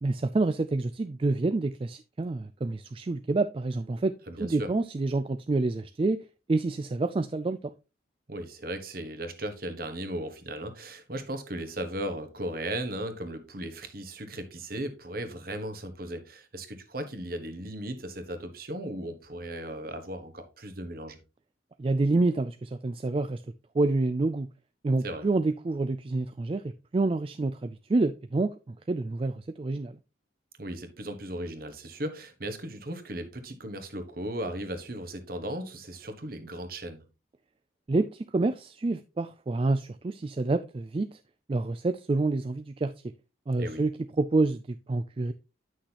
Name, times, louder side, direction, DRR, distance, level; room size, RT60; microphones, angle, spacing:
voice 1, 0.0-6.2 6.5-7.7 21.8-23.4 23.7-24.5 24.8-26.6 26.9-30.0 37.9-41.2 41.5-42.9 43.5-45.3, right 2 dB, 30° right, 0.3 m, -28 dB
voice 2, 4.3-4.7 8.3-21.2 25.0-25.3 30.6-37.0 43.6-43.8, right 1 dB, 50° right, 1.4 m, -36 dB
9.8 x 6.3 x 2.9 m
head